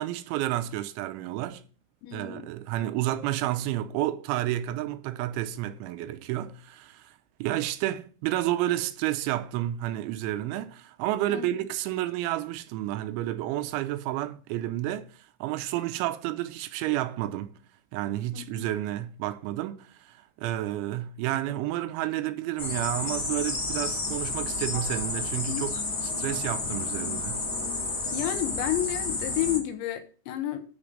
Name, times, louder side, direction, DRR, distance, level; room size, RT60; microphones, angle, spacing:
voice 1, 0.0-1.6 2.1-7.2 7.4-15.1 15.4-17.6 17.9-27.4, right 14 dB, 80° right, 2.9 m, -30 dB
voice 2, 2.0-2.5 11.3-11.5 18.3-18.7 25.3-25.6 28.1-30.6, left 13 dB, 75° left, 3.0 m, -31 dB
sound 1, 22.6-29.6, left 3 dB, 60° left, 0.6 m, -31 dB
12.5 x 4.9 x 5.1 m
omnidirectional pair, 5.7 m